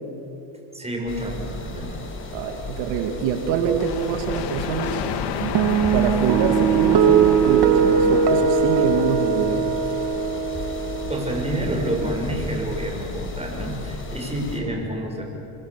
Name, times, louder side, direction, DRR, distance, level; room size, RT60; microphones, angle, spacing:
voice 1, 0.7-2.0 11.1-15.2, right 1 dB, 15° right, 1 dB, 6.6 m, -28 dB
sound 1, 1.1-14.6, left 2 dB, 25° left, 4.8 m, -34 dB
voice 2, 2.3-5.0 5.4-9.8, right 7 dB, 75° right, 5 dB, 2.3 m, -25 dB
sound 2, 3.8-9.3, left 7 dB, 55° left, 2.2 m, -31 dB
sound 3, 5.6-12.1, right 6 dB, 50° right, 2.4 m, -20 dB
27.5 x 22.5 x 7.4 m, 2.9 s
supercardioid pair, 105°, 48 cm